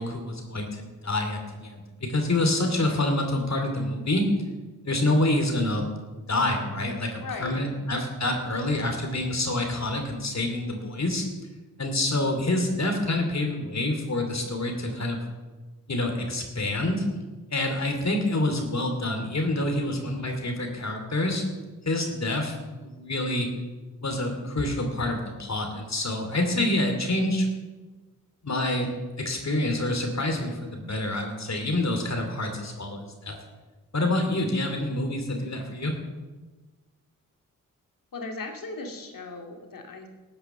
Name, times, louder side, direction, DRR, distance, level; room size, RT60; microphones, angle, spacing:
voice 1, 0.0-4.3 4.8-5.9 6.1-11.2 11.8-15.2 15.9-17.0 17.5-21.4 21.9-22.5 22.8-23.5 24.0-27.5 28.4-28.9 29.2-33.3 33.9-35.9, left 1 dB, 50° left, 4 dB, 2.8 m, -27 dB
voice 2, 7.2-7.7 38.1-40.1, left 3 dB, 70° left, 3 dB, 2.2 m, -37 dB
13.5 x 7.9 x 7.0 m, 1.3 s
cardioid pair, 45°, 35 cm